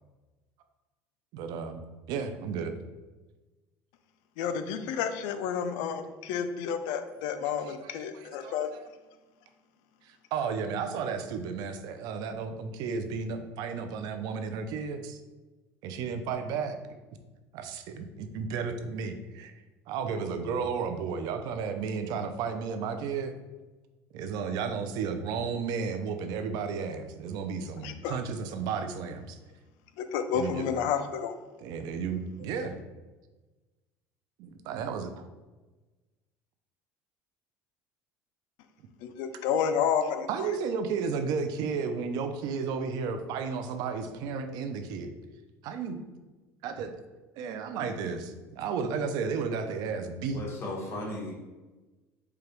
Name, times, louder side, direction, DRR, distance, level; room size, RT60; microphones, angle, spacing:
voice 1, 1.3-1.8 2.1-2.7 7.7-7.8 8.1-8.5 10.0-15.2 15.8-16.8 17.5-19.5 19.9-23.3 24.1-29.4 30.3-30.7 31.6-32.8 34.4-35.3 40.3-45.1 45.6-46.0 46.6-46.9 47.4-50.4, right 5 dB, 65° right, 8 dB, 0.4 m, -33 dB
voice 2, 4.4-8.7 27.8-28.2 30.0-31.4 39.0-40.3, left 7 dB, 75° left, 9 dB, 0.4 m, -30 dB
voice 3, 50.3-51.3, left 1 dB, 35° left, -3 dB, 1.2 m, -36 dB
4.9 x 2.3 x 3.0 m, 1.2 s
supercardioid pair, 115°, 7 cm